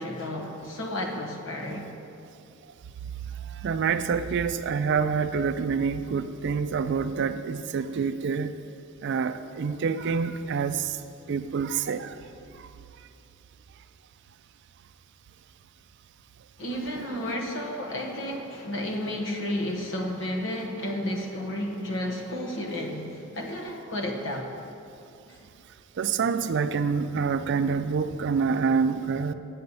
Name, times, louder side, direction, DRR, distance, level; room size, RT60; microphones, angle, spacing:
voice 1, 0.0-1.9 16.6-24.5 25.3-25.4, left 1 dB, 60° left, 1 dB, 1.1 m, -32 dB
voice 2, 3.3-8.5 9.0-11.0 11.3-12.2 12.5-12.7 17.0-17.1 26.0-29.3, right 5 dB, 55° right, 11 dB, 0.4 m, -27 dB
8.2 x 7.7 x 5.4 m, 2.6 s
head